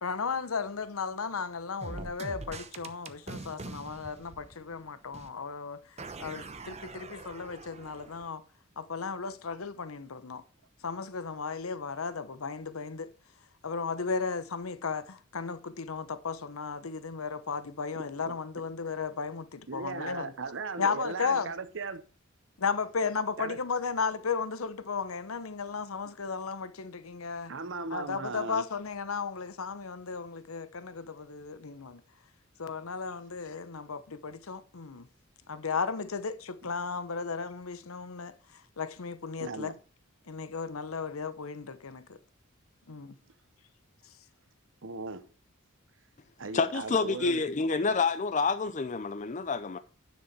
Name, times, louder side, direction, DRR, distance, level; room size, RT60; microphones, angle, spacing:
voice 1, 0.0-5.8 6.2-8.4 8.8-10.4 10.8-13.1 13.6-20.3 20.8-21.5 22.6-27.5 27.9-32.0 32.6-35.1 35.5-38.3 38.8-39.7 40.3-42.1 42.9-43.1, left 5 dB, 85° left, 0.9 m, -35 dB
sound 1, 1.8-4.9 5.1-5.3 6.0-8.3, right 3 dB, 30° right, 0.9 m, -43 dB
voice 2, 18.0-18.6 19.7-22.0 23.4-23.6 26.1-26.2 27.5-28.7 39.4-39.8 44.8-45.3 46.4-47.4, right 4 dB, 65° right, 0.9 m, -38 dB
voice 3, 46.5-49.8, left 4 dB, 35° left, 0.6 m, -28 dB
10.0 x 6.3 x 4.6 m
head